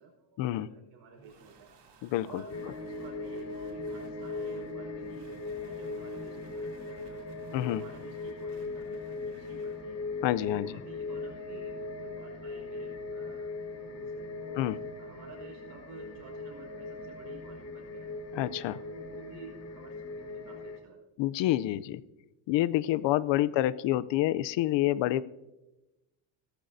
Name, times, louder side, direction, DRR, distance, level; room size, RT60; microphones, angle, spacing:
voice 1, 0.0-1.7 2.2-5.3 5.6-10.0 10.4-14.6 15.0-18.1 18.7-21.1 23.5-23.6, right 4 dB, 65° right, 0 dB, 5.0 m, -51 dB
sound 1, 1.1-9.8, right 4 dB, 85° right, 4.3 m, -59 dB
voice 2, 2.0-2.4 7.5-7.8 10.2-10.8 14.6-14.8 18.3-18.8 21.2-22.0 22.5-25.2, left 14 dB, 70° left, 18 dB, 0.6 m, -28 dB
sound 2, 2.5-20.8, left 3 dB, 35° left, 1.2 m, -39 dB
16.5 x 14.0 x 2.7 m, 1.0 s
cardioid pair, 155°, 45 cm